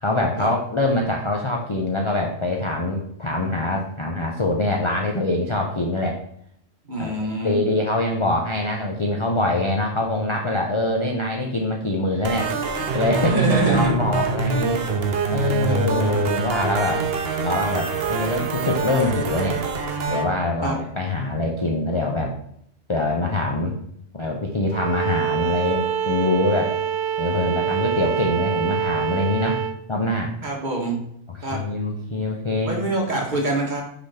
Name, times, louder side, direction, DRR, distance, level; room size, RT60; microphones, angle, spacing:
voice 1, 0.0-6.2 7.0-12.5 12.9-13.4 13.6-14.8 15.3-17.1 17.4-19.6 20.1-22.3 22.9-23.8 24.1-26.7 27.2-29.6 29.9-30.3 31.3-32.7, left 2 dB, 30° left, 0 dB, 0.7 m, -24 dB
voice 2, 6.9-7.6 13.3-14.0 15.7-16.2 20.6-20.8 30.4-31.0 31.4-31.6 32.6-33.8, right 2 dB, 35° right, -1 dB, 1.9 m, -24 dB
sound 1, 12.2-20.2, right 4 dB, 55° right, 1.0 m, -25 dB
Bowed string instrument, 24.7-29.8, right 9 dB, 80° right, 0.9 m, -25 dB
6.3 x 4.2 x 5.6 m, 0.69 s
omnidirectional pair, 1.3 m